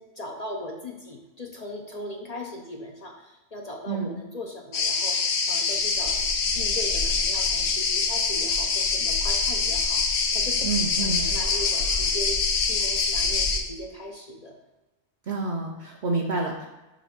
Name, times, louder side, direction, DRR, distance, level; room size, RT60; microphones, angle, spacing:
voice 1, 0.0-5.2 5.5-10.7 11.0-14.6, left 1 dB, 40° left, 1 dB, 0.6 m, -38 dB
sound 1, 4.7-13.6, left 4 dB, 75° left, 1.1 m, -25 dB
voice 2, 10.6-11.2 15.3-16.7, right 3 dB, 50° right, 0 dB, 0.7 m, -28 dB
6.1 x 3.5 x 5.8 m, 1.1 s
omnidirectional pair, 1.3 m